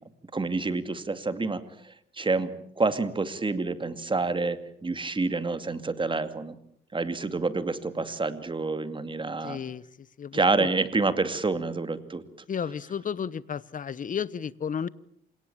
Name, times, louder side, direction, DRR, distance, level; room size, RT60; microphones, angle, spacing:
voice 1, 0.3-2.5 2.8-6.5 6.9-9.6 10.3-12.2, right 3 dB, 25° right, 11 dB, 2.4 m, -28 dB
voice 2, 9.4-10.7 12.5-14.9, left 7 dB, 40° left, 19 dB, 1.0 m, -33 dB
27.5 x 18.0 x 8.8 m, 0.69 s
cardioid pair, 90°, 20 cm